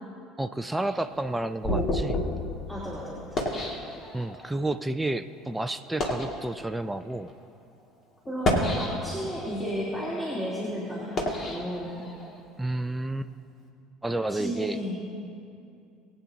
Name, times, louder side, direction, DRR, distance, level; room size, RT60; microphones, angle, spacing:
voice 1, 0.4-2.2 4.1-7.3 12.6-13.3 14.0-14.8, right 2 dB, 10° right, 9 dB, 0.5 m, -30 dB
sound 1, 0.8-4.5 5.2-5.3 5.8-6.4 7.2-7.3 8.2-9.3 9.9-12.4, left 1 dB, 40° left, 2.3 m, -30 dB
voice 2, 2.7-3.4 8.3-12.0 14.3-15.0, equal, 10° left, -9 dB, 3.4 m, -33 dB
22.0 x 9.2 x 2.9 m, 2.5 s
figure-of-eight pair, 60°, 0 cm